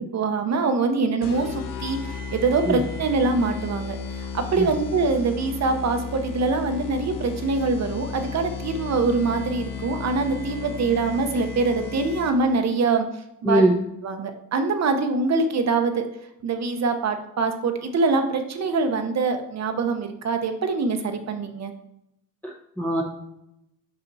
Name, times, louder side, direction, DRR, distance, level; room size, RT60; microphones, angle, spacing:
voice 1, 0.1-13.1 13.4-13.6 14.0-16.1 16.4-21.7, right 4 dB, 50° right, 7 dB, 0.9 m, -24 dB
sound 1, 1.2-12.6, left 5 dB, 70° left, 0.8 m, -34 dB
voice 2, 13.4-13.8 22.4-23.0, right 1 dB, 5° left, -1 dB, 0.7 m, -21 dB
5.9 x 5.6 x 4.0 m, 0.82 s
cardioid pair, 130°, 33 cm